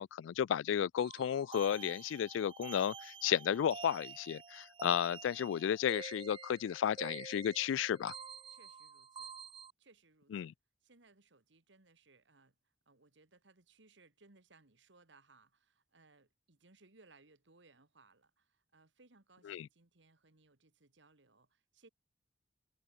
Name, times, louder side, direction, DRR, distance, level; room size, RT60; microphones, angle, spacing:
voice 1, 0.0-8.1 10.3-10.5 19.5-19.7, left 9 dB, 80° left, 0.3 m, -33 dB
sound 1, 1.0-9.7, right 5 dB, 25° right, 0.7 m, -49 dB
voice 2, 8.5-9.3 9.8-10.5 10.8-12.6 12.9-21.9, right 3 dB, 70° right, 2.0 m, -65 dB
head